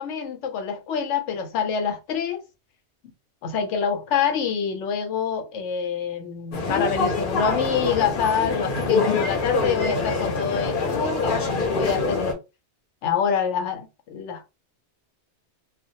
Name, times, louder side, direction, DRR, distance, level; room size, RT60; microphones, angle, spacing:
voice 1, 0.0-2.4 3.4-12.4 13.0-14.5, left 7 dB, 90° left, 0.9 m, -26 dB
sound 1, 6.5-12.3, left 3 dB, 55° left, 0.8 m, -25 dB
2.3 x 2.1 x 2.6 m
omnidirectional pair, 1.2 m